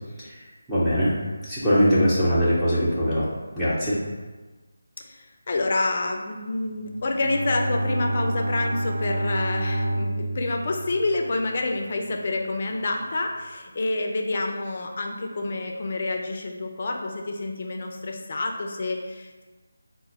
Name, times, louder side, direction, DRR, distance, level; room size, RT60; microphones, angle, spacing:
voice 1, 0.7-3.3 3.6-4.0, equal, 5° right, -13 dB, 0.6 m, -22 dB
voice 2, 5.0-19.4, left 2 dB, 40° left, 2 dB, 0.5 m, -28 dB
Bowed string instrument, 6.8-12.0, right 1 dB, 55° right, 0.3 m, -29 dB
3.8 x 2.2 x 4.3 m, 1.2 s
figure-of-eight pair, 160°, 0 cm